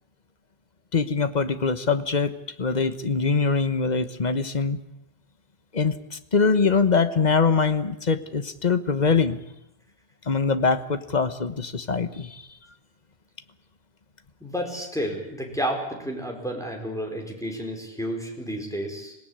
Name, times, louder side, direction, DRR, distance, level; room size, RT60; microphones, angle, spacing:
voice 1, 0.9-4.8 5.7-9.4 10.3-12.4, left 4 dB, 45° left, 11 dB, 1.2 m, -23 dB
voice 2, 14.4-19.2, equal, 5° left, 1 dB, 5.0 m, -31 dB
25.0 x 18.0 x 8.9 m, 0.84 s
omnidirectional pair, 1.0 m